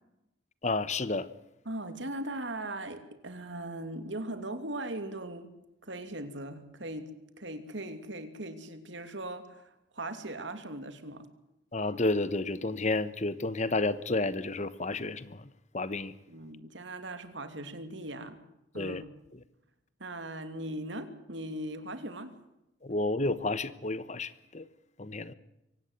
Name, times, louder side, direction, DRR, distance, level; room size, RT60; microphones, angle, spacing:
voice 1, 0.6-1.3 11.7-15.4 15.7-16.1 18.8-19.0 22.8-24.6 25.0-25.3, left 2 dB, 40° left, 15 dB, 1.1 m, -31 dB
voice 2, 1.6-5.5 5.8-7.1 7.4-11.3 16.3-18.4 18.7-19.1 20.0-22.3, right 1 dB, 70° right, 8 dB, 2.9 m, -39 dB
24.0 x 18.0 x 8.2 m, 0.88 s
head